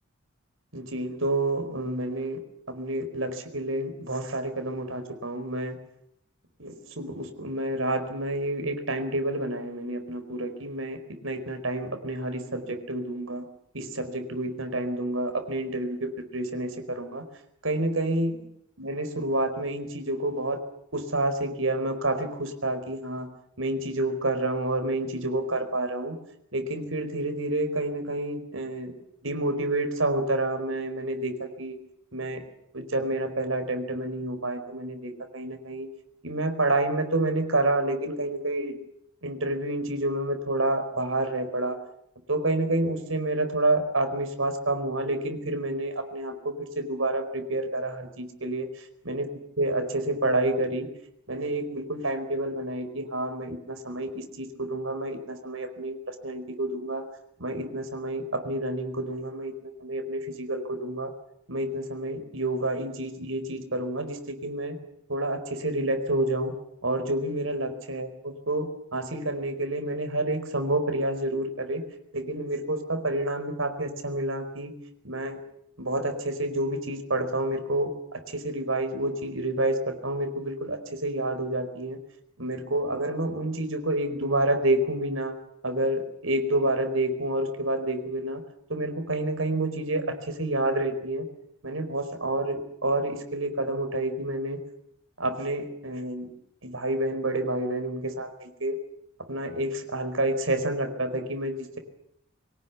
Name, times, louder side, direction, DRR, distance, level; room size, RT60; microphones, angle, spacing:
voice 1, 0.7-2.4 2.7-5.7 6.6-11.0 11.2-13.4 13.7-17.2 17.6-18.4 18.8-20.6 20.9-23.3 23.6-26.2 26.5-28.9 29.2-31.8 32.1-32.4 32.7-35.9 36.2-38.8 39.2-41.8 42.3-48.7 49.0-49.3 49.6-50.9 51.3-57.0 57.4-59.5 59.8-61.1 61.5-64.8 65.1-66.5 66.8-71.8 72.1-74.7 75.0-75.4 75.8-82.0 82.4-85.4 85.6-88.4 88.7-91.3 91.6-94.6 95.2-96.3 96.6-98.8 99.3-101.8, right 1 dB, 80° right, 7 dB, 4.8 m, -29 dB
24.5 x 18.0 x 8.4 m, 0.73 s
head